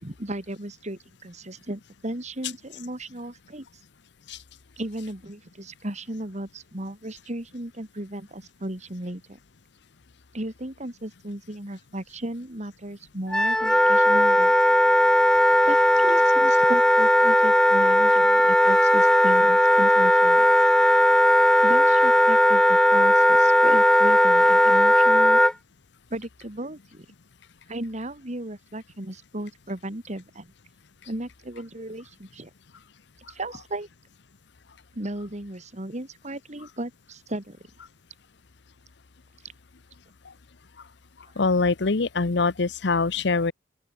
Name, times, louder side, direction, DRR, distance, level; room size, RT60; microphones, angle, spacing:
voice 1, 0.0-3.7 4.8-9.4 10.3-14.5 15.6-20.5 21.6-25.4 26.1-27.1 27.7-30.5 31.0-32.5 33.3-33.9 34.9-37.6, right 1 dB, 40° right, 2.8 m, -35 dB
Wind instrument woodwind instrument, 13.3-25.5, left 1 dB, 5° left, 0.6 m, -17 dB
voice 2, 41.4-43.5, left 3 dB, 65° left, 0.9 m, -23 dB
open air
head